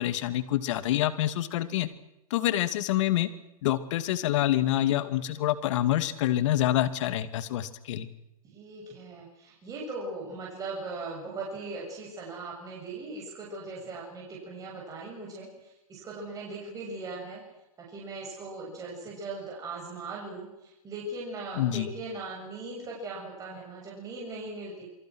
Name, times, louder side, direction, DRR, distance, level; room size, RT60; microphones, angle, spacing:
voice 1, 0.0-1.9 2.3-3.3 3.6-8.1 21.6-21.9, left 13 dB, 55° left, 12 dB, 2.4 m, -27 dB
voice 2, 8.4-17.4 17.8-24.9, right 3 dB, 20° right, -3 dB, 7.3 m, -39 dB
28.5 x 23.5 x 6.4 m, 0.89 s
hypercardioid pair, 140°, 19 cm